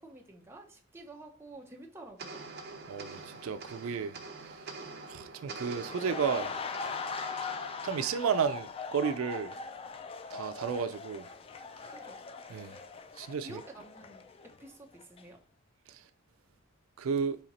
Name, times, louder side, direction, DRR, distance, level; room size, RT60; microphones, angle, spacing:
voice 1, 0.0-2.4 11.9-12.2 13.4-15.4, right 2 dB, 10° right, 0.7 m, -50 dB
sound 1, 2.2-8.8, right 3 dB, 50° right, 0.7 m, -46 dB
voice 2, 2.9-4.2 4.5-4.6 5.1-6.5 7.8-9.5 10.3-11.3 12.5-12.7 13.2-13.6 15.9-16.0 17.0-17.4, right 6 dB, 80° right, 0.3 m, -32 dB
sound 2, 5.8-14.7 15.0-15.2, left 4 dB, 25° left, 0.3 m, -40 dB
4.2 x 2.8 x 4.0 m
head